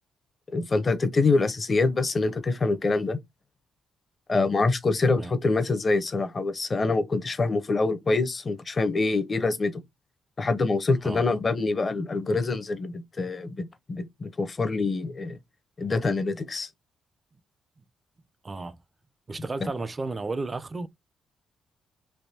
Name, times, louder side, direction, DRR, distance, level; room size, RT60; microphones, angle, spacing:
voice 1, 0.5-3.2 4.3-9.8 10.4-15.4 15.8-16.7 19.6-19.7, left 3 dB, 35° left, 0.7 m, -25 dB
voice 2, 18.4-18.8 19.3-20.9, right 3 dB, 30° right, 0.4 m, -33 dB
3.4 x 2.7 x 2.6 m
cardioid pair, 70°, 0 cm